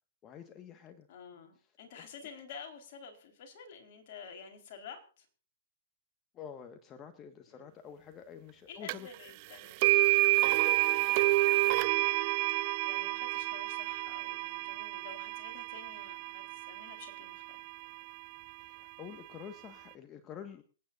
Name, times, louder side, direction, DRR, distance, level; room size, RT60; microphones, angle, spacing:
voice 1, 0.2-1.1 1.9-2.1 6.3-9.1 18.6-20.6, left 8 dB, 25° left, 7 dB, 1.6 m, -48 dB
voice 2, 1.1-5.3 7.5-7.8 8.7-12.1 12.3-17.6, left 6 dB, 55° left, 4 dB, 4.3 m, -51 dB
sound 1, 8.9-9.0 9.8-17.8, right 20 dB, 45° right, 0.8 m, -29 dB
27.5 x 9.6 x 2.6 m, 0.38 s
hypercardioid pair, 130°, 0 cm